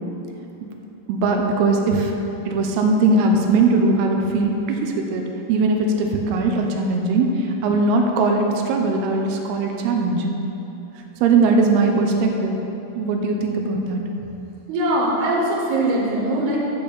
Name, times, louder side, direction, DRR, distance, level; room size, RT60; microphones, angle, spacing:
voice 1, 1.1-2.1 2.5-10.3 11.2-12.6 13.0-14.0, right 3 dB, 80° right, 2 dB, 2.4 m, -20 dB
voice 2, 14.7-16.6, right 1 dB, 60° right, -5 dB, 3.2 m, -21 dB
10.5 x 5.2 x 6.8 m, 3.0 s
omnidirectional pair, 5.5 m